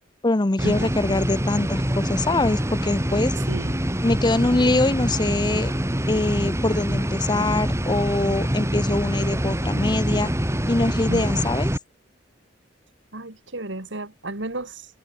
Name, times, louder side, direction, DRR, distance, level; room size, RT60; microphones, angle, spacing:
voice 1, 0.2-3.3 4.0-5.7 6.1-10.3 10.7-11.7, left 2 dB, 25° left, 0.7 m, -23 dB
sound 1, 0.6-11.8, equal, 15° right, 3.7 m, -25 dB
voice 2, 3.5-3.8 11.1-11.4 13.1-14.9, right 1 dB, 75° right, 3.3 m, -32 dB
head